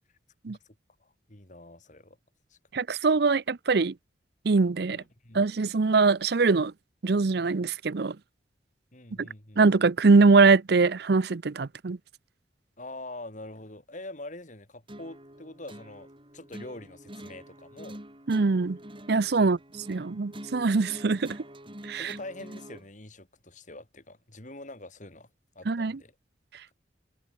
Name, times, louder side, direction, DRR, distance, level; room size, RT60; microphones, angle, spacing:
voice 1, 1.0-2.2 2.5-2.6 4.8-5.4 8.9-9.6 12.8-16.1 16.3-18.0 19.3-19.6 22.0-25.3 25.6-26.1, left 2 dB, 45° left, 3.7 m, -44 dB
voice 2, 2.7-3.9 4.4-5.0 5.3-6.7 7.0-8.2 9.2-9.3 9.6-12.0 18.3-18.8 19.1-19.6 19.9-21.4 21.8-22.1 25.7-26.0, right 4 dB, 60° right, 0.6 m, -22 dB
sound 1, 14.9-22.9, right 1 dB, 30° right, 7.4 m, -46 dB
head